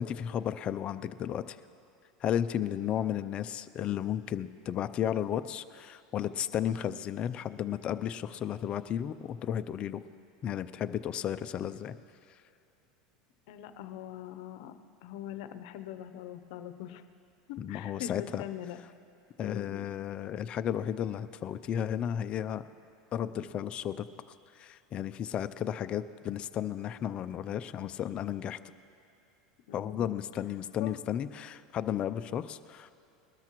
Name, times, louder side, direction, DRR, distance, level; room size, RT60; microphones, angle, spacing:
voice 1, 0.0-1.6 2.2-10.0 10.4-11.9 12.3-12.4 17.6-18.4 19.4-22.6 23.1-24.1 24.5-28.6 29.7-32.9, left 10 dB, 35° left, 11 dB, 0.4 m, -33 dB
voice 2, 2.5-2.8 13.5-14.7 15.0-17.0 17.5-18.8 19.4-20.1 29.7-30.2 30.8-31.0, left 11 dB, 70° left, 10 dB, 0.7 m, -42 dB
20.5 x 13.0 x 3.0 m, 2.7 s
supercardioid pair, 140°, 3 cm